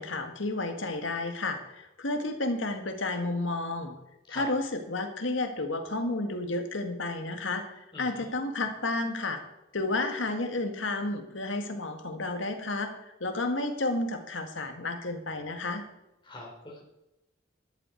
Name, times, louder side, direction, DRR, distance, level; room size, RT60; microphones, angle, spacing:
voice 1, 0.0-4.0 4.3-9.4 9.7-15.8, left 2 dB, 80° left, 5 dB, 1.9 m, -31 dB
voice 2, 7.9-8.3 16.2-16.8, left 2 dB, 25° left, -2 dB, 3.7 m, -43 dB
13.5 x 11.0 x 4.6 m, 0.91 s
head